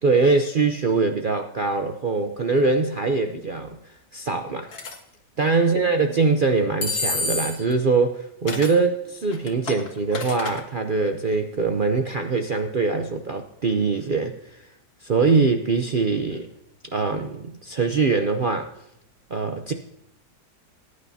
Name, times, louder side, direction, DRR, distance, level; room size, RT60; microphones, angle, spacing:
voice 1, 0.0-3.8 4.1-4.7 5.4-14.6 15.0-16.5 16.9-18.7 19.3-19.7, right 4 dB, 60° right, 5 dB, 0.5 m, -23 dB
sound 1, 4.7-5.0 6.8-7.7 8.5-8.8 9.3-10.6, left 3 dB, 65° left, 2.0 m, -28 dB
20.0 x 9.6 x 2.7 m, 0.82 s
omnidirectional pair, 1.8 m